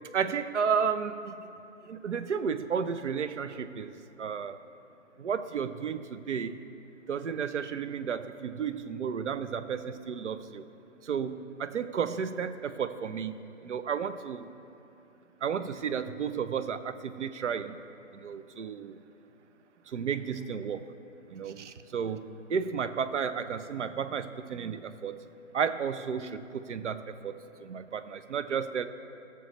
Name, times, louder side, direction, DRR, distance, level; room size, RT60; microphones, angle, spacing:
voice 1, 0.1-1.5 1.9-3.9 4.2-4.6 5.2-6.6 7.1-10.6 11.0-13.3 13.6-14.5 15.4-17.8 18.2-19.0 19.9-20.8 21.3-22.2 22.5-25.2 25.5-27.4 27.6-28.9, right 6 dB, 70° right, 11 dB, 0.6 m, -32 dB
19.0 x 7.0 x 3.1 m, 2.8 s
figure-of-eight pair, 150°, 37 cm